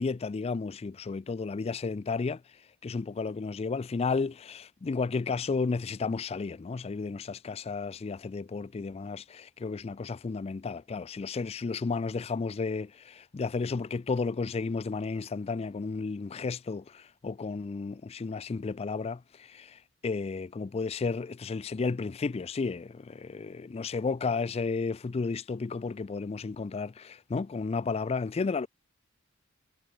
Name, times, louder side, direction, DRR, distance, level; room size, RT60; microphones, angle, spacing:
voice 1, 0.0-2.4 2.8-28.7, left 4 dB, 30° left, 0.3 m, -33 dB
head